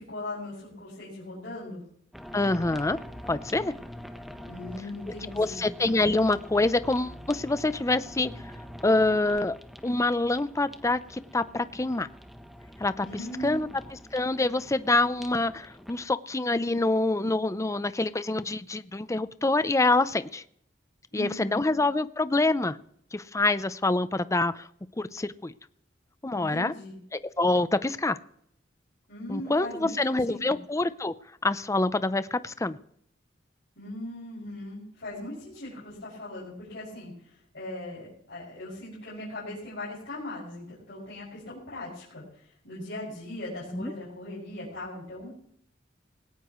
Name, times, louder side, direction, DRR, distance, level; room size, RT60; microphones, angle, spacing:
voice 1, 0.0-1.8 4.4-5.7 13.0-13.7 21.1-21.7 26.3-27.0 29.1-30.5 33.8-45.4, left 1 dB, 65° left, -8 dB, 6.4 m, -39 dB
sound 1, 2.1-16.1, equal, ahead, 1.0 m, -45 dB
voice 2, 2.3-3.0 3.3-3.7 5.4-8.3 8.8-9.6 9.8-12.1 12.8-13.1 13.4-13.7 14.1-20.4 21.1-22.8 23.1-24.7 25.0-25.5 26.2-26.7 27.4-28.2 29.3-31.1 31.4-32.8 43.7-43.9, left 2 dB, 15° left, 14 dB, 0.6 m, -26 dB
19.5 x 17.5 x 3.1 m, 0.68 s
head